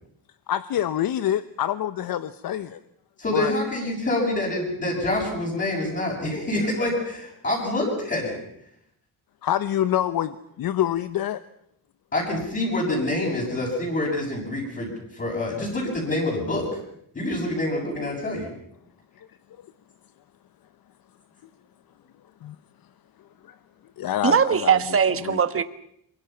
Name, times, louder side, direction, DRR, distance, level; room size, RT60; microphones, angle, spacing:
voice 1, 0.5-2.8 3.3-3.5 9.4-11.4 19.2-19.3 22.4-22.5 23.5-23.6 24.0-24.8 25.2-25.4, left 11 dB, 65° left, 13 dB, 1.0 m, -26 dB
voice 2, 3.2-8.4 12.1-16.7 17.1-18.5, left 1 dB, 30° left, -6 dB, 7.1 m, -26 dB
voice 3, 24.2-25.6, right 7 dB, 35° right, 11 dB, 1.4 m, -20 dB
26.5 x 24.0 x 5.8 m, 0.73 s
cardioid pair, 145°, 38 cm